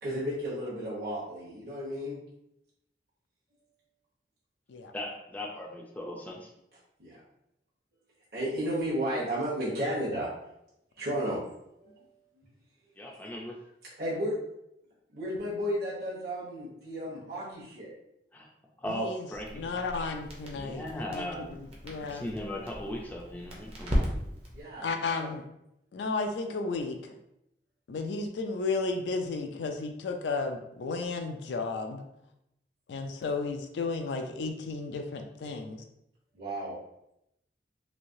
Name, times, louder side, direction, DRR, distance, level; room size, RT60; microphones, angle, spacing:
voice 1, 0.0-2.2 7.0-7.2 8.3-10.3 11.0-11.4 11.8-12.0 14.0-14.3 15.1-17.9 24.5-24.9 36.3-36.7, equal, 55° right, -8 dB, 0.9 m, -33 dB
voice 2, 4.9-6.5 13.0-13.5 18.3-18.5 18.8-19.7 20.6-21.6 22.0-24.1, left 1 dB, 10° left, -2 dB, 0.4 m, -38 dB
voice 3, 18.9-19.3 19.5-22.3 24.8-25.4 25.9-27.2 27.9-32.0 32.9-35.8, left 3 dB, 80° left, 5 dB, 0.3 m, -33 dB
Crackle, 19.3-24.6, equal, 35° right, 0.6 m, -36 dB
3.1 x 2.7 x 2.6 m, 0.82 s
head